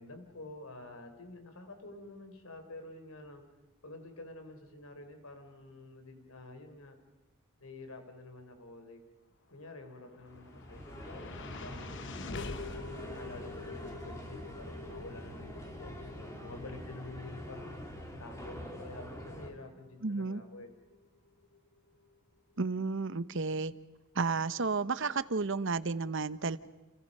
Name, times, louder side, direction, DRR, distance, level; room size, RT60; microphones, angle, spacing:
voice 1, 0.0-3.5 3.8-7.0 7.6-9.0 9.5-11.9 12.6-17.8 18.2-20.7, left 2 dB, 85° left, 7 dB, 3.9 m, -49 dB
sound 1, 9.8-22.1, left 3 dB, 60° left, 1.0 m, -47 dB
sound 2, 10.3-19.5, equal, 15° left, 3.4 m, -45 dB
voice 2, 20.0-20.4 22.6-23.7 24.1-26.6, right 4 dB, 60° right, 14 dB, 0.9 m, -32 dB
30.0 x 29.5 x 5.5 m, 1.0 s
head